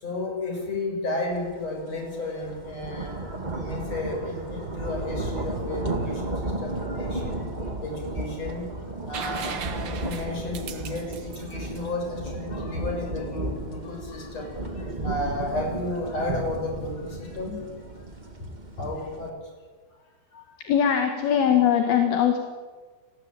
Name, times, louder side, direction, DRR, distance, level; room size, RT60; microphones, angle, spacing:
voice 1, 0.0-3.2 3.6-6.2 6.6-7.4 7.8-8.6 9.1-14.5 15.0-16.9 17.4-17.6 18.8-19.3, left 2 dB, 40° left, 1 dB, 7.7 m, -32 dB
sound 1, 1.5-1.7 2.0-19.3, right 1 dB, 35° right, 0.7 m, -34 dB
sound 2, 9.1-12.8 14.7-14.8, right 7 dB, 80° right, 1.0 m, -37 dB
voice 2, 20.6-22.4, left 9 dB, 70° left, 5 dB, 3.7 m, -21 dB
28.5 x 19.5 x 9.1 m, 1.4 s
omnidirectional pair, 4.7 m